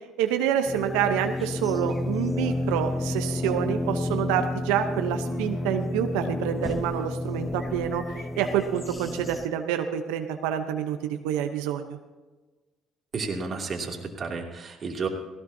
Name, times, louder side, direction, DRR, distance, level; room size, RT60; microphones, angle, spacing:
voice 1, 0.2-8.0 8.4-12.0, right 9 dB, 85° right, 6 dB, 0.8 m, -27 dB
sound 1, 0.7-9.5, left 2 dB, 20° left, 1.0 m, -30 dB
voice 2, 13.1-15.1, right 4 dB, 45° right, 1 dB, 2.7 m, -32 dB
17.5 x 17.0 x 2.8 m, 1.2 s
supercardioid pair, 65°, 0 cm